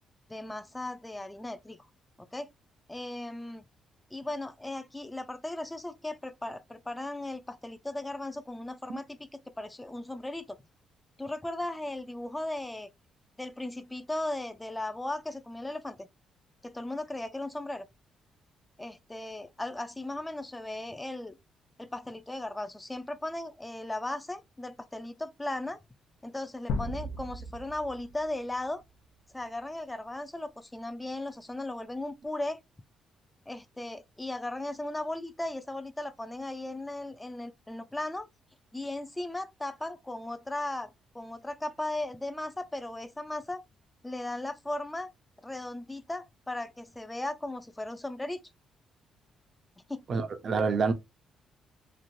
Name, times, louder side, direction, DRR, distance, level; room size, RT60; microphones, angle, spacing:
voice 1, 0.3-1.9 2.2-2.5 2.9-3.6 4.1-9.3 9.6-10.6 11.2-12.9 13.4-16.1 16.6-17.9 18.8-21.4 21.8-25.8 26.2-28.8 29.3-32.6 33.5-38.3 38.7-43.6 44.0-45.1 45.4-48.4 49.9-50.0, left 1 dB, 10° left, 0.5 m, -37 dB
sound 1, 26.7-28.7, left 2 dB, 80° left, 0.5 m, -36 dB
voice 2, 50.1-50.9, right 4 dB, 50° right, 0.7 m, -27 dB
3.1 x 2.4 x 2.6 m
cardioid pair, 90°, 0 cm